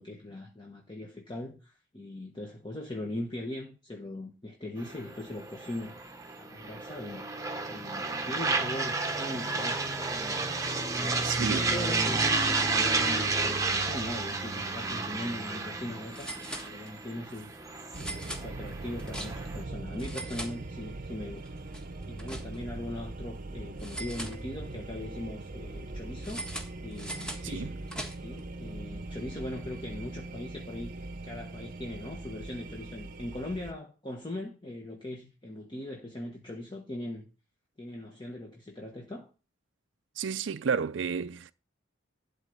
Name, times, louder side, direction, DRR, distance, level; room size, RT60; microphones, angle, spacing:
voice 1, 0.0-6.0 6.4-10.5 10.9-17.7 18.0-21.6 22.1-26.5 26.8-27.7 28.2-37.3 37.8-39.3, left 1 dB, 25° left, 1.4 m, -40 dB
sound 1, 4.8-19.6, right 3 dB, 15° right, 1.1 m, -31 dB
voice 2, 11.2-11.7 27.5-27.7 40.2-41.5, right 6 dB, 65° right, 0.4 m, -31 dB
sound 2, 16.1-17.2 17.9-19.6 19.9-21.1 21.4-22.8 23.8-24.9 26.2-28.5, right 1 dB, 5° left, 1.5 m, -42 dB
sound 3, 17.9-33.7, right 2 dB, 45° right, 0.8 m, -41 dB
12.0 x 4.1 x 8.0 m
head